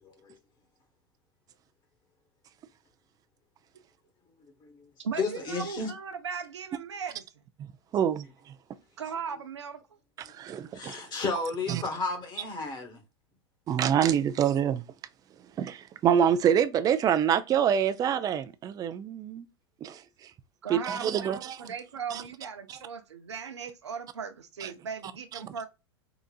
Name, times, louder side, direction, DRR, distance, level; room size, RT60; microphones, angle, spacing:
voice 1, 0.0-0.3 4.6-4.9 5.2-5.9 10.3-10.4 10.7-13.0, left 3 dB, 30° left, 1.2 m, -33 dB
voice 2, 5.0-7.2 9.0-9.8 20.6-25.7, right 6 dB, 85° right, 0.6 m, -38 dB
voice 3, 7.9-8.3 10.3-11.0 11.7-11.8 13.7-14.8 15.6-19.5 19.8-20.0 20.7-21.6 22.1-22.2 22.7-22.8 24.6-24.7, right 9 dB, 25° right, 0.4 m, -26 dB
3.9 x 2.4 x 2.3 m
hypercardioid pair, 95°, 14 cm